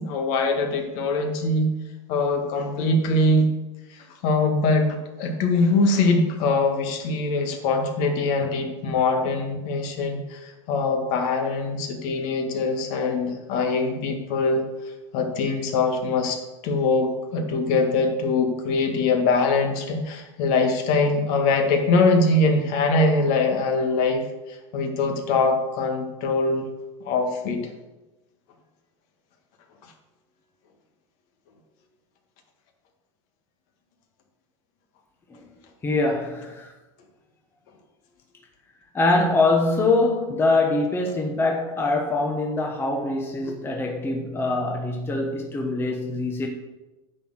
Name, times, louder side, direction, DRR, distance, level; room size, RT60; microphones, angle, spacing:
voice 1, 0.0-1.7 2.1-3.5 3.9-4.9 5.2-14.7 15.1-26.6 27.0-27.7, left 3 dB, 55° left, 4 dB, 1.8 m, -23 dB
voice 2, 35.8-36.7 38.9-46.5, left 2 dB, 15° left, 1 dB, 1.1 m, -23 dB
9.8 x 4.5 x 7.5 m, 1.1 s
supercardioid pair, 135°, 16 cm